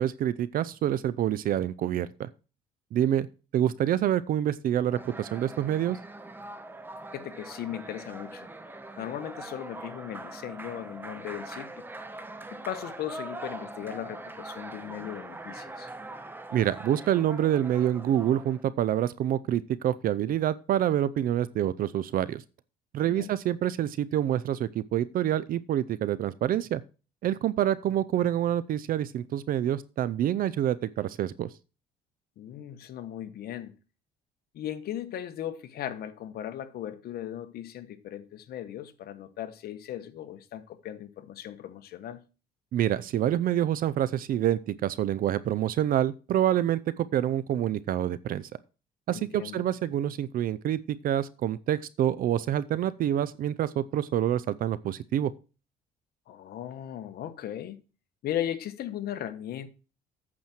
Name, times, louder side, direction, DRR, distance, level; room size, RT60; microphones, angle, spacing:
voice 1, 0.0-2.3 2.9-3.3 3.5-6.0 16.5-22.4 22.9-26.8 27.2-31.5 42.7-48.4 49.1-55.3, right 11 dB, 55° right, 0.6 m, -27 dB
sound 1, 4.9-18.6, right 2 dB, 10° right, 1.1 m, -42 dB
voice 2, 7.1-8.5 9.0-11.8 12.5-15.9 23.0-23.3 32.4-33.7 34.5-42.2 49.1-49.6 56.3-57.8 58.2-59.7, left 11 dB, 65° left, 1.3 m, -37 dB
8.6 x 7.4 x 4.5 m
cardioid pair, 110°, 17 cm